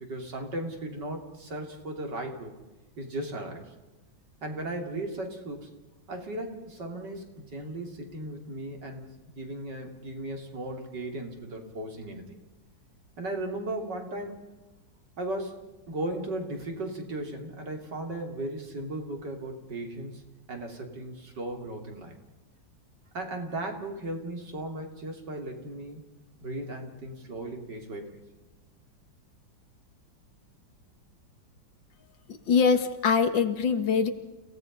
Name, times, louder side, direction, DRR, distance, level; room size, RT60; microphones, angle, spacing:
voice 1, 0.0-2.5 3.0-3.6 4.4-5.7 6.1-9.1 9.3-12.4 13.2-14.5 15.2-20.2 20.5-22.2 23.1-26.0 26.4-28.2, right 1 dB, 65° right, 3 dB, 3.7 m, -36 dB
voice 2, 32.3-34.1, left 6 dB, 80° left, 9 dB, 2.3 m, -23 dB
30.0 x 17.5 x 5.4 m, 1.1 s
omnidirectional pair, 2.0 m